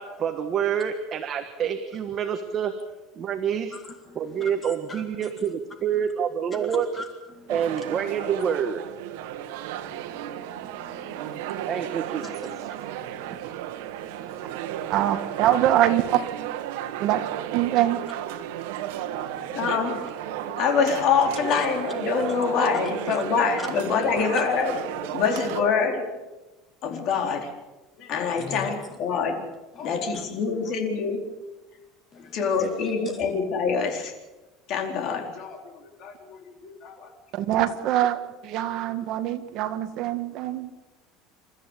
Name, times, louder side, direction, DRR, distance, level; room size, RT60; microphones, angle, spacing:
voice 1, 0.0-2.7 3.2-3.8 4.1-6.9 7.5-8.8 11.7-12.7, right 8 dB, 30° right, 6 dB, 1.4 m, -27 dB
voice 2, 3.7-5.3 5.9-6.0 6.5-7.1 7.3-7.7 9.9-11.9 12.2-13.6 14.0-14.6 18.9-19.6 22.2-22.4 23.1-23.2 28.4-28.7 29.8-29.9 30.1-30.2 32.1-32.7, left 3 dB, 15° left, 5 dB, 2.1 m, -44 dB
sound 1, 7.5-25.6, right 12 dB, 85° right, 1.6 m, -34 dB
voice 3, 14.9-16.2 17.0-17.2 17.5-18.0 37.3-40.7, right 12 dB, 50° right, 8 dB, 1.8 m, -24 dB
voice 4, 19.5-26.0 26.8-27.5 28.0-29.4 29.8-31.2 32.1-34.1 34.7-37.1, left 5 dB, 45° left, 3 dB, 4.3 m, -26 dB
28.5 x 14.0 x 8.3 m, 1.1 s
cardioid pair, 165°, 0 cm